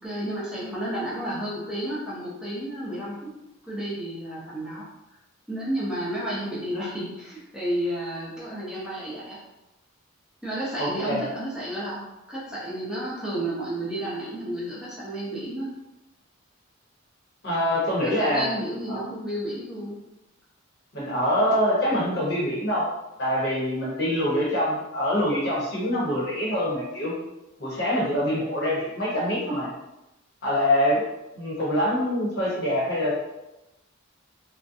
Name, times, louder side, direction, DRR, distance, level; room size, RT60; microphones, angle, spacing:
voice 1, 0.0-3.3 3.7-4.9 5.5-9.4 10.4-12.0 12.3-15.7 18.0-20.0, right 1 dB, 5° right, -10 dB, 0.6 m, -31 dB
voice 2, 10.8-11.2 17.4-18.5 18.9-19.0 20.9-22.8 23.2-27.1 27.6-29.7 30.4-31.0 31.4-33.1, equal, 55° left, -6 dB, 0.9 m, -25 dB
2.5 x 2.2 x 2.6 m, 0.97 s
head